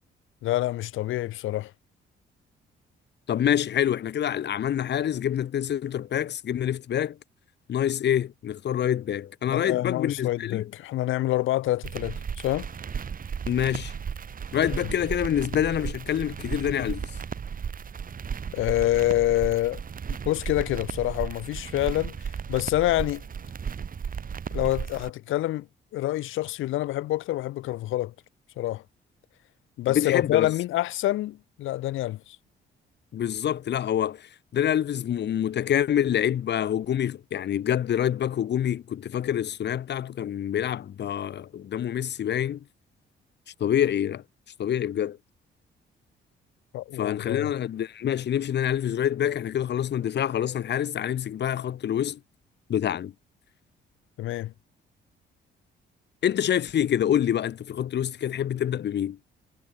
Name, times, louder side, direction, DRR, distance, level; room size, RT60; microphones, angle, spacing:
voice 1, 0.4-1.7 9.5-12.7 14.8-14.9 18.5-19.8 20.1-22.1 22.5-23.2 24.5-25.7 25.9-28.1 28.6-28.8 29.8-32.4 46.7-47.5 54.2-54.5, left 15 dB, 90° left, 2.3 m, -27 dB
voice 2, 3.3-7.2 7.7-10.7 13.5-13.9 14.5-17.1 29.9-30.5 33.1-42.6 43.6-44.2 44.6-45.2 47.0-52.2 52.7-53.1 56.2-59.2, left 10 dB, 60° left, 1.7 m, -26 dB
sound 1, 11.8-25.1, right 7 dB, 45° right, 2.8 m, -35 dB
cardioid pair, 90°, 20 cm